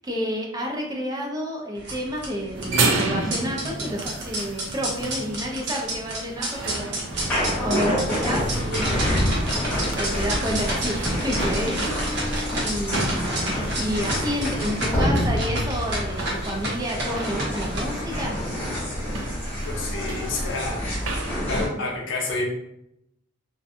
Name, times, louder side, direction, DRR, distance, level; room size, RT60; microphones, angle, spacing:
voice 1, 0.0-8.5 8.8-9.3 9.9-11.8 12.0-18.4 21.3-21.5, equal, 20° right, 0 dB, 0.5 m, -30 dB
sound 1, 1.8-17.8, right 1 dB, 60° right, 0.8 m, -31 dB
sound 2, 2.5-21.3, right 3 dB, 85° right, 0.4 m, -33 dB
sound 3, 7.1-21.7, equal, 10° left, 0.9 m, -27 dB
voice 2, 19.7-20.8 21.5-22.5, left 3 dB, 70° left, -1 dB, 0.6 m, -29 dB
2.5 x 2.1 x 2.6 m, 0.80 s
head